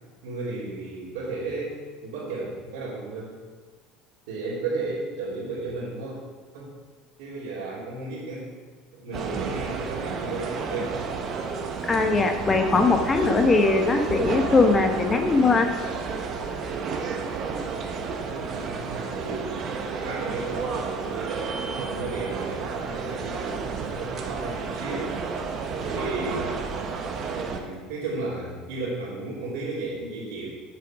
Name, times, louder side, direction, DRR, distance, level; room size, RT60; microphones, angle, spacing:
voice 1, 0.2-3.3 4.3-6.2 6.5-6.7 7.2-8.5 8.9-11.0 17.7-21.5 21.8-25.3 25.8-26.5 27.3-30.5, right 3 dB, 80° right, -11 dB, 3.2 m, -34 dB
sound 1, 9.1-27.6, right 5 dB, 45° right, 1.2 m, -31 dB
voice 2, 11.8-15.7, left 3 dB, 25° left, 6 dB, 1.0 m, -20 dB
8.2 x 7.3 x 5.1 m, 1.5 s
supercardioid pair, 95°, 0 cm